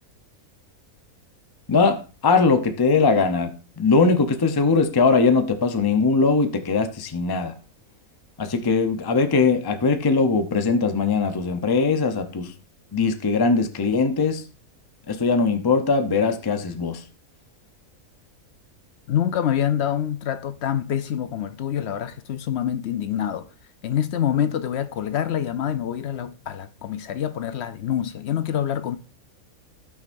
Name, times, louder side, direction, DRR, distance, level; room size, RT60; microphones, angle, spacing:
voice 1, 1.7-3.5 3.8-7.5 8.4-12.5 12.9-14.4 15.1-17.0, left 4 dB, 25° left, 0.6 m, -20 dB
voice 2, 19.1-23.5 23.8-29.0, left 9 dB, 60° left, 0.8 m, -26 dB
16.0 x 6.1 x 2.6 m
omnidirectional pair, 1.5 m